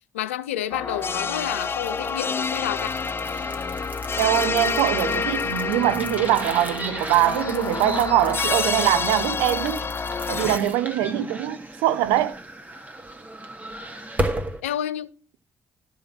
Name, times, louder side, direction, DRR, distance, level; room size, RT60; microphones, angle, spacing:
voice 1, 0.1-2.9 14.6-15.1, left 12 dB, 85° left, 0.4 m, -29 dB
sound 1, 0.7-10.6, left 5 dB, 35° left, 0.6 m, -28 dB
sound 2, 1.0-14.6, right 1 dB, 25° right, 1.9 m, -35 dB
voice 2, 4.2-9.8 10.3-12.4, right 13 dB, 75° right, 0.6 m, -23 dB
12.5 x 5.4 x 6.0 m
hypercardioid pair, 40°, 7 cm